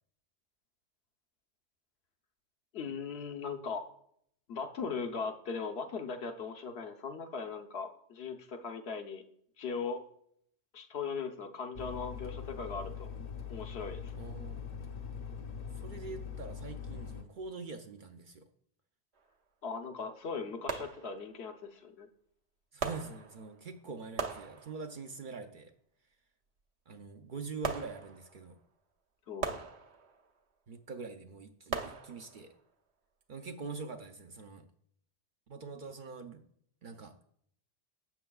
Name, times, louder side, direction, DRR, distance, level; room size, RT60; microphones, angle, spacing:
voice 1, 2.7-3.8 4.5-9.2 9.6-10.0 10.7-13.1 13.5-14.1 19.6-22.1 29.3-29.6, left 5 dB, 65° left, 5 dB, 1.0 m, -39 dB
sound 1, 11.8-17.2, left 7 dB, 45° left, 0.6 m, -42 dB
voice 2, 14.1-14.7 15.8-18.5 22.7-25.7 26.9-28.5 30.7-32.5 33.3-34.7 35.5-36.4 36.8-37.1, right 4 dB, 55° right, 5 dB, 0.7 m, -44 dB
sound 2, 19.2-19.3 20.7-21.5 22.8-23.7 24.2-25.1 27.6-28.5 29.4-30.4 31.7-32.6 33.2-33.3, right 5 dB, 70° right, 1.0 m, -39 dB
12.0 x 7.6 x 2.3 m, 0.67 s
omnidirectional pair, 1.2 m